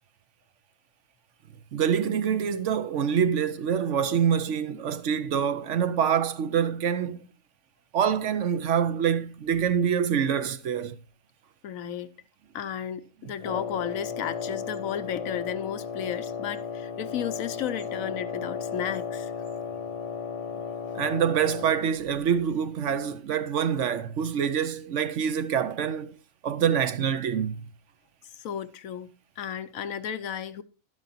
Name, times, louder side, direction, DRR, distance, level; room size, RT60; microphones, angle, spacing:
voice 1, 1.7-7.3 7.9-10.9 20.9-26.2 26.4-27.6, right 8 dB, 65° right, 1.0 m, -26 dB
voice 2, 11.6-12.1 12.5-19.3 28.3-29.1 29.4-30.6, left 9 dB, 80° left, 1.1 m, -33 dB
Wind instrument woodwind instrument, 13.4-22.0, left 6 dB, 40° left, 0.5 m, -35 dB
11.5 x 11.0 x 2.8 m
omnidirectional pair, 1.4 m